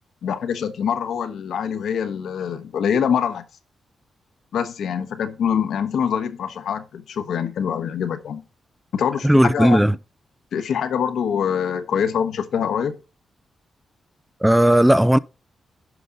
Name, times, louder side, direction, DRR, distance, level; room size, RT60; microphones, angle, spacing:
voice 1, 0.2-3.4 4.5-8.4 8.9-9.8 10.5-12.9, left 7 dB, 80° left, 1.1 m, -24 dB
voice 2, 9.2-9.9 14.4-15.2, right 1 dB, 5° right, 0.3 m, -15 dB
11.0 x 5.1 x 3.9 m
cardioid pair, 100°, 0 cm